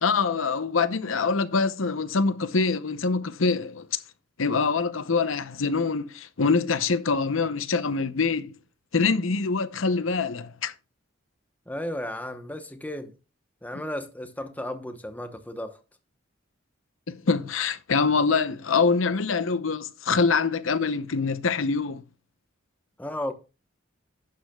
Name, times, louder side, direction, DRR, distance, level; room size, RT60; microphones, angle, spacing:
voice 1, 0.0-4.0 4.4-8.5 8.9-10.7 17.1-22.0, left 4 dB, 80° left, 0.8 m, -25 dB
voice 2, 11.7-13.1 13.6-15.8 23.0-23.3, left 1 dB, 10° left, 0.9 m, -34 dB
11.5 x 9.4 x 2.3 m
head